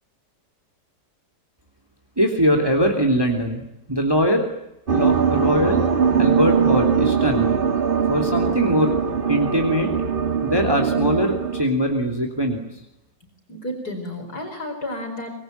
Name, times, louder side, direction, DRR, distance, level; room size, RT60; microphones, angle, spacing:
voice 1, 2.2-3.6 3.9-4.5 4.9-5.8 6.1-7.5 8.1-8.9 9.3-9.9 10.4-12.8, equal, 10° right, 3 dB, 3.1 m, -21 dB
sound 1, 4.9-11.7, right 6 dB, 30° right, 1.4 m, -21 dB
voice 2, 13.5-15.4, left 1 dB, 55° left, 3 dB, 5.4 m, -31 dB
25.5 x 23.0 x 9.4 m, 0.86 s
omnidirectional pair, 2.0 m